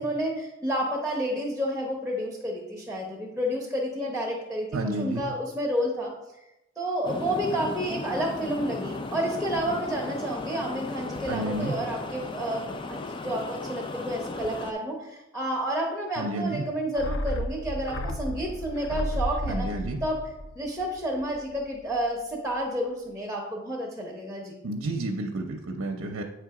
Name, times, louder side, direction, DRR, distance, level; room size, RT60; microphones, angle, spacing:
voice 1, 0.0-6.1 6.8-19.7 20.0-20.2 20.5-24.5, equal, ahead, -2 dB, 0.9 m, -30 dB
voice 2, 4.7-5.2 11.3-11.7 16.2-16.6 19.5-20.0 24.6-26.2, right 1 dB, 75° right, 3 dB, 0.6 m, -30 dB
sound 1, 7.0-14.7, left 2 dB, 25° left, 0.4 m, -36 dB
sound 2, 16.9-21.6 21.8-21.9, equal, 70° left, 0.6 m, -33 dB
8.4 x 3.3 x 4.8 m, 0.93 s
head